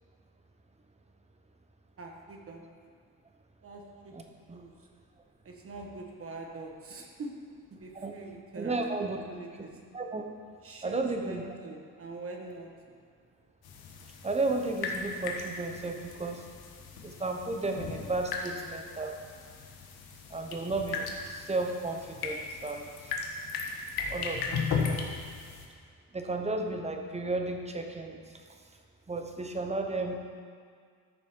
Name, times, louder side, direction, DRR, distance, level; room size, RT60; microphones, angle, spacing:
voice 1, 2.0-2.6 3.6-4.1 4.5-4.7 5.4-7.3 7.7-9.7 10.6-12.7, right 2 dB, 35° right, 1 dB, 1.4 m, -43 dB
voice 2, 8.6-9.2 9.9-10.2 10.8-11.4 14.2-16.4 17.0-19.2 20.3-23.1 24.1-25.0 26.1-28.2 29.1-30.2, right 2 dB, 15° right, 3 dB, 0.9 m, -33 dB
sound 1, 13.6-25.7, left 5 dB, 70° left, 1.5 m, -37 dB
13.5 x 7.0 x 4.6 m, 2.1 s
cardioid pair, 130°, 39 cm